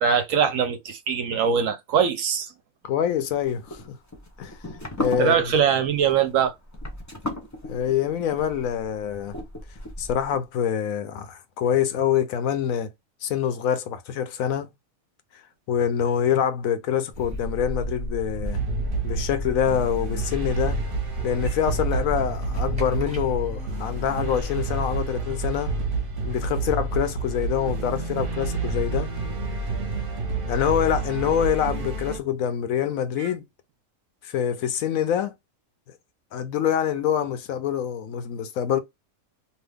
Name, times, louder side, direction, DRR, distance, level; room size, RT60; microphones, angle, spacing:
voice 1, 0.0-2.5 5.2-6.5 33.2-33.3, right 7 dB, 70° right, 0.9 m, -22 dB
voice 2, 2.8-4.0 4.4-4.6 5.0-5.5 7.6-9.4 10.0-12.9 13.2-14.7 15.7-18.6 19.0-20.8 21.2-25.8 26.2-29.1 30.5-33.4 34.2-35.3 36.3-38.8, left 9 dB, 70° left, 0.9 m, -25 dB
sound 1, 3.4-10.4, left 1 dB, 20° left, 0.5 m, -36 dB
sound 2, 17.1-25.2, right 1 dB, 5° right, 0.9 m, -35 dB
sound 3, 18.4-32.2, right 3 dB, 45° right, 0.8 m, -29 dB
2.8 x 2.3 x 3.4 m
omnidirectional pair, 1.6 m